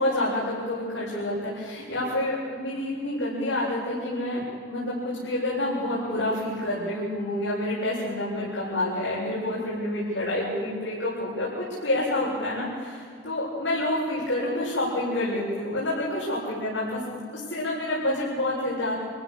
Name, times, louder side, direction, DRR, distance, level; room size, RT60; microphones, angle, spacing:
voice 1, 0.0-17.2 17.5-19.0, left 1 dB, 85° left, -9 dB, 7.5 m, -28 dB
27.5 x 16.0 x 6.7 m, 2.1 s
head